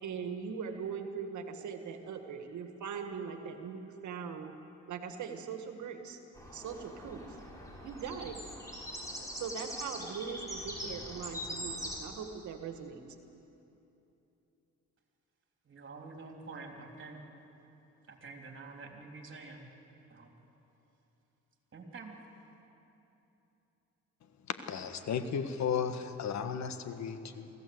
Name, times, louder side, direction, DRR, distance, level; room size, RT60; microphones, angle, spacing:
voice 1, 0.0-4.5 4.9-6.2 6.5-7.2 7.8-8.4 9.3-13.0, right 6 dB, 70° right, 6 dB, 1.8 m, -40 dB
sound 1, 6.3-12.0, equal, 10° left, 5.1 m, -42 dB
voice 2, 15.7-17.2 18.1-19.7 20.1-20.3 21.7-22.3, right 3 dB, 40° right, 2 dB, 3.5 m, -47 dB
voice 3, 24.5-27.5, left 7 dB, 65° left, 9 dB, 1.5 m, -34 dB
24.5 x 15.5 x 8.0 m, 3.0 s
cardioid pair, 90°, 30 cm